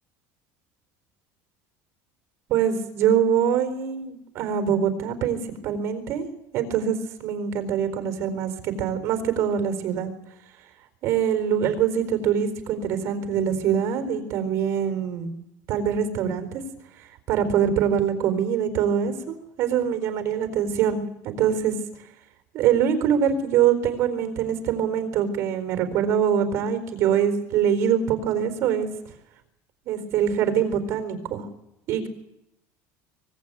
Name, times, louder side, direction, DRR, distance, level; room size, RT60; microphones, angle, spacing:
voice 1, 2.5-5.4 5.6-6.2 6.5-10.1 11.0-15.3 15.7-16.6 17.3-21.7 22.5-28.9 29.9-31.5 31.9-32.1, right 8 dB, 45° right, 8 dB, 4.2 m, -24 dB
24.0 x 21.0 x 9.3 m, 0.86 s
cardioid pair, 165°, 7 cm